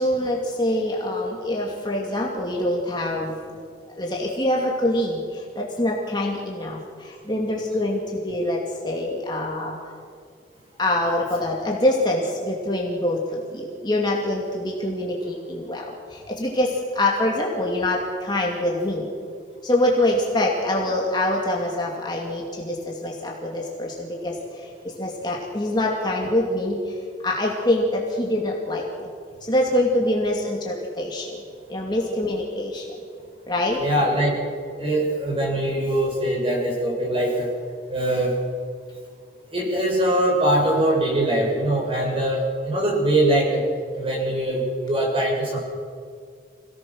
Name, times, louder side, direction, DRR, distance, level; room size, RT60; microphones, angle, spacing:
voice 1, 0.0-3.6 3.9-9.8 10.8-19.1 19.6-27.0 27.2-29.1 29.4-31.4 31.7-32.9 33.5-33.8, left 1 dB, 25° left, -2 dB, 2.6 m, -25 dB
voice 2, 33.8-34.3 34.8-37.5 37.9-38.3 39.5-43.6 43.9-45.6, right 1 dB, 30° right, -2 dB, 6.8 m, -22 dB
27.0 x 18.0 x 6.3 m, 2.1 s
head